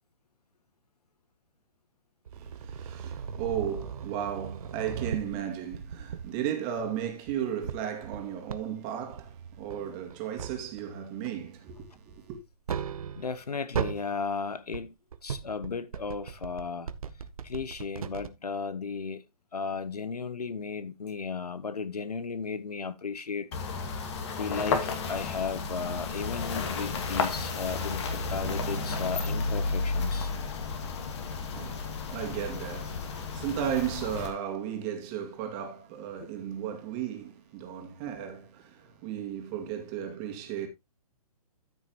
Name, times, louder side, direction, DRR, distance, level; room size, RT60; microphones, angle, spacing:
voice 1, 2.3-12.4 31.4-40.7, right 9 dB, 30° right, 2.2 m, -35 dB
sound 1, 2.3-6.4 6.8-8.6 9.1-10.9 11.2-13.4 13.7-14.1 14.5-18.3, right 7 dB, 65° right, 0.9 m, -38 dB
voice 2, 13.2-14.9 15.2-16.9 17.4-19.2 19.5-23.5 23.8-23.9 24.4-28.0 28.3-30.3 36.2-36.3, left 5 dB, 80° left, 0.9 m, -35 dB
sound 2, 23.5-34.3, left 4 dB, 45° left, 2.2 m, -32 dB
13.5 x 6.3 x 3.0 m
figure-of-eight pair, 125°, 20 cm